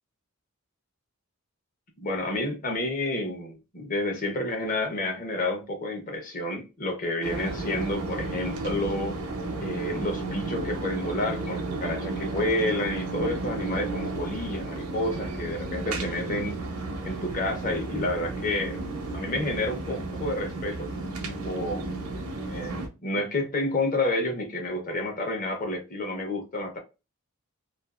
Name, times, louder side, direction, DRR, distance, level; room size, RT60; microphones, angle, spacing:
voice 1, 2.0-9.2 9.6-16.7 17.0-20.9 21.2-22.0 22.5-26.8, left 1 dB, 40° left, 0.8 m, -30 dB
sound 1, 7.2-22.9, right 2 dB, 90° right, 0.7 m, -33 dB
2.5 x 2.4 x 2.4 m
head